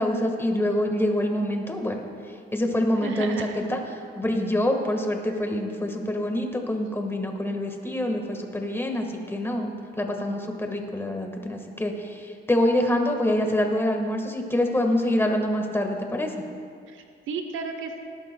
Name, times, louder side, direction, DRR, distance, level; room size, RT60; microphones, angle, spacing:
voice 1, 0.0-2.1 2.5-3.8 4.1-16.3, left 1 dB, 10° left, 3 dB, 1.6 m, -26 dB
voice 2, 3.0-3.7 16.9-18.0, right 4 dB, 80° right, 5 dB, 0.9 m, -33 dB
18.0 x 11.5 x 2.3 m, 2.3 s
cardioid pair, 90°, 20 cm